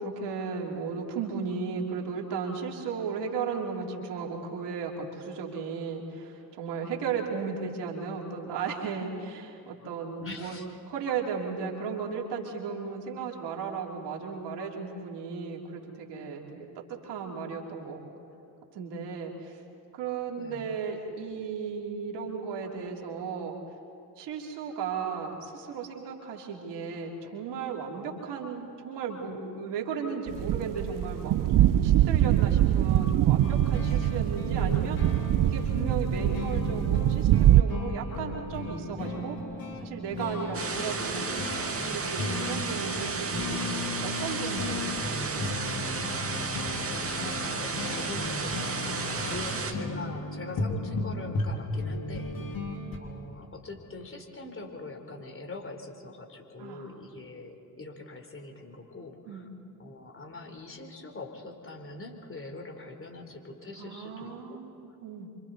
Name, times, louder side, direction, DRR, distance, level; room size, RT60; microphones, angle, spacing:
voice 1, 0.0-10.6 10.9-18.0 18.7-19.6 19.9-23.6 24.2-39.4 39.8-43.6 44.0-45.4 48.8-49.3 52.4-52.5 56.6-56.8 59.3-59.4 63.8-65.3, right 5 dB, 65° right, 0 dB, 3.3 m, -35 dB
voice 2, 10.2-10.7 20.4-20.7 33.8-34.3 46.7-48.8 49.2-52.4 52.9-59.5 59.8-64.6, left 2 dB, 30° left, 3 dB, 3.7 m, -43 dB
sound 1, 30.3-37.6, right 13 dB, 45° right, 0.6 m, -23 dB
sound 2, 33.4-53.0, left 2 dB, 50° left, 3.5 m, -35 dB
sound 3, 40.5-49.7, right 4 dB, 30° right, 2.3 m, -33 dB
28.5 x 25.5 x 4.1 m, 2.7 s
hypercardioid pair, 45°, 44 cm